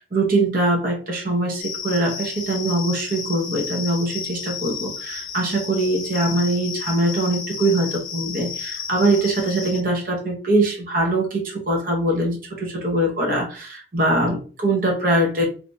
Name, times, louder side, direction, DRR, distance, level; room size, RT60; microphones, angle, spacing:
voice 1, 0.1-15.5, right 1 dB, 50° right, -1 dB, 0.9 m, -22 dB
sound 1, 1.6-9.8, left 7 dB, 50° left, 0.5 m, -33 dB
2.8 x 2.8 x 3.4 m, 0.37 s
head